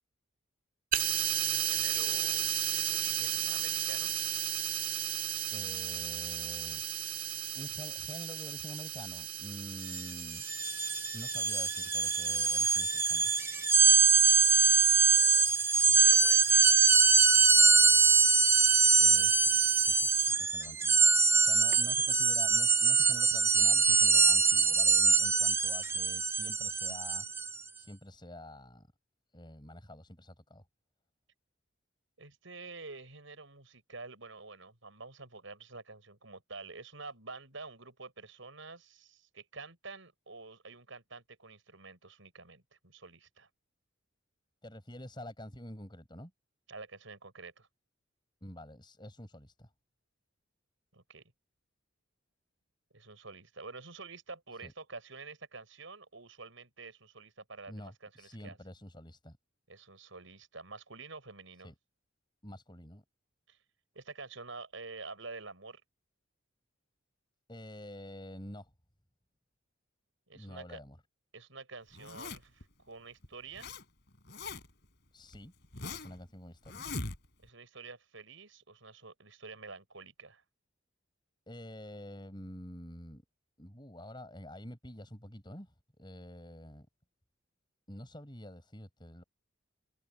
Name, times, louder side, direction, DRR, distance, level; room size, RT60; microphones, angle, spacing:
sound 1, 0.9-20.3, right 11 dB, 45° right, 1.9 m, -36 dB
voice 1, 1.3-4.1 15.7-16.8 32.2-43.5 46.7-47.7 50.9-51.2 52.9-58.6 59.7-61.7 63.5-63.6 63.9-65.8 70.3-70.8 71.3-73.7 77.4-80.4, right 3 dB, 70° right, 6.1 m, -48 dB
voice 2, 5.5-7.3 7.5-10.4 11.1-13.3 18.9-21.1 21.4-27.2 27.8-28.9 29.3-30.6 44.6-46.3 48.4-49.7 54.6-54.7 57.7-59.4 61.6-61.7 62.4-63.0 67.5-68.7 70.3-71.0 75.1-75.5 75.9-76.8 81.5-83.2 83.6-86.9 87.9-89.2, left 1 dB, 20° left, 7.7 m, -48 dB
sound 2, 9.8-10.0 10.3-27.6, right 4 dB, 10° right, 0.4 m, -24 dB
Zipper (clothing), 71.9-72.6 73.2-73.8 74.1-74.8 75.3-76.2 76.7-77.5, left 3 dB, 55° left, 3.8 m, -41 dB
head